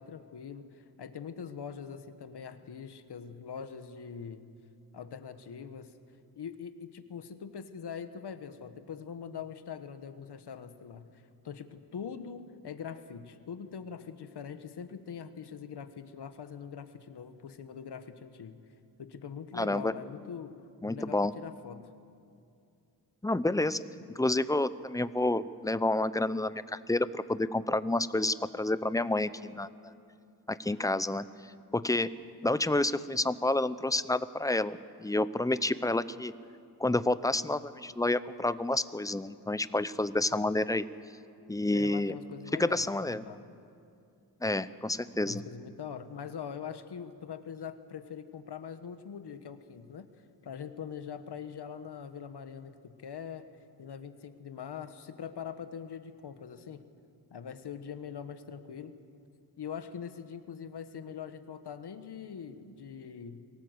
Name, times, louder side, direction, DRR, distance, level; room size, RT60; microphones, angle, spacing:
voice 1, 0.0-4.5 4.9-5.9 6.4-18.6 19.0-21.9 41.7-42.8 43.2-43.4 45.2-50.1 50.4-53.5 53.8-56.8 57.3-58.9 59.6-63.5, left 7 dB, 85° left, 10 dB, 1.2 m, -43 dB
voice 2, 19.5-19.9 20.8-21.3 23.2-23.8 24.2-29.7 30.5-31.2 31.7-32.1 32.4-36.3 36.8-40.8 41.5-42.1 42.5-43.2 44.4-45.4, left 2 dB, 10° left, 15 dB, 0.6 m, -29 dB
23.0 x 18.0 x 8.0 m, 2.5 s
wide cardioid pair, 95°, 39 cm